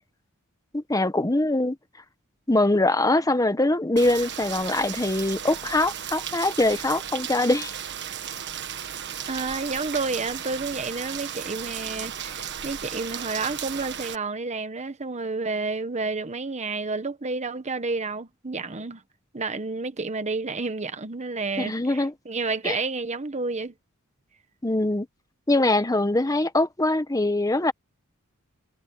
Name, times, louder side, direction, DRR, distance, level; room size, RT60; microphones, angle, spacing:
voice 1, 0.7-1.8 2.5-7.7 21.6-22.1 22.6-22.8 24.6-25.1 25.5-27.7, left 2 dB, 15° left, 1.1 m, -23 dB
Rain, 4.0-14.1, right 9 dB, 55° right, 1.4 m, -35 dB
voice 2, 9.3-19.0 19.3-23.7, right 3 dB, 30° right, 1.2 m, -30 dB
head